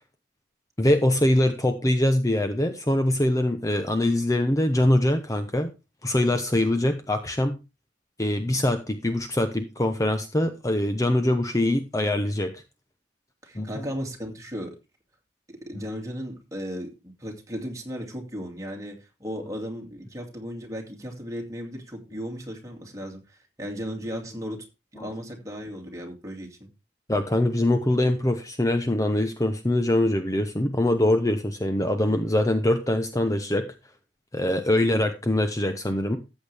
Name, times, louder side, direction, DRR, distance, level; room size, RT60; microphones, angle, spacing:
voice 1, 0.8-5.7 6.0-7.6 8.2-12.6 13.5-13.9 15.7-15.8 25.0-25.1 27.1-33.7 34.3-36.2, left 1 dB, 20° left, 7 dB, 0.8 m, -23 dB
voice 2, 13.4-14.8 15.5-24.6 24.9-26.7, equal, 20° right, 1 dB, 2.5 m, -36 dB
14.0 x 8.2 x 3.5 m, 0.28 s
head